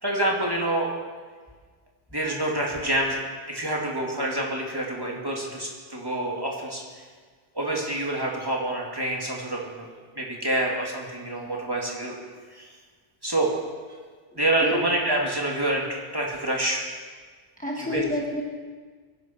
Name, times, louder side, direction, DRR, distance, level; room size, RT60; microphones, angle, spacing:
voice 1, 0.0-0.9 2.1-3.2 3.5-7.0 7.5-9.9 10.1-12.2 12.5-12.7 13.2-13.5 14.3-15.8 16.1-16.9 17.8-18.0, right 1 dB, 20° right, -2 dB, 2.6 m, -27 dB
voice 2, 17.6-18.4, left 1 dB, 10° left, -1 dB, 1.3 m, -28 dB
24.0 x 11.0 x 4.6 m, 1.5 s
omnidirectional pair, 1.1 m